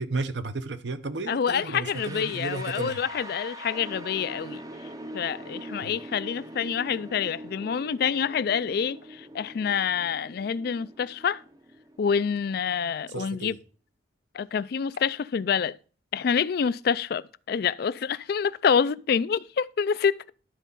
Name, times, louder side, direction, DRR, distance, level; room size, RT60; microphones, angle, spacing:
voice 1, 0.0-3.0 5.8-6.0 13.1-13.6, right 3 dB, 65° right, 0.8 m, -33 dB
voice 2, 1.3-4.6 5.1-11.4 12.0-13.6 14.3-15.8 16.1-20.3, left 7 dB, 55° left, 0.3 m, -27 dB
sound 1, 1.9-12.7, right 1 dB, 20° right, 0.5 m, -43 dB
12.0 x 4.1 x 5.4 m
head